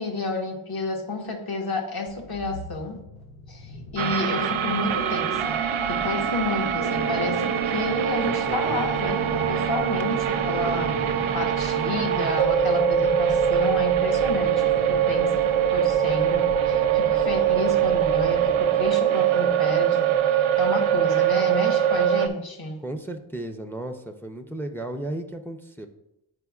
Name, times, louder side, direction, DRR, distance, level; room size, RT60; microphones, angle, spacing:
voice 1, 0.0-3.0 3.5-5.6 5.9-10.9 11.3-22.8, left 2 dB, 50° left, 2 dB, 1.2 m, -30 dB
sound 1, 2.1-18.9, left 2 dB, 90° left, 0.9 m, -40 dB
sound 2, 4.0-22.3, right 9 dB, 80° right, 0.6 m, -23 dB
voice 2, 8.3-8.9 10.6-11.2 22.8-25.9, right 1 dB, 5° left, 6 dB, 0.4 m, -35 dB
9.6 x 4.3 x 2.3 m, 0.87 s
wide cardioid pair, 100°, 48 cm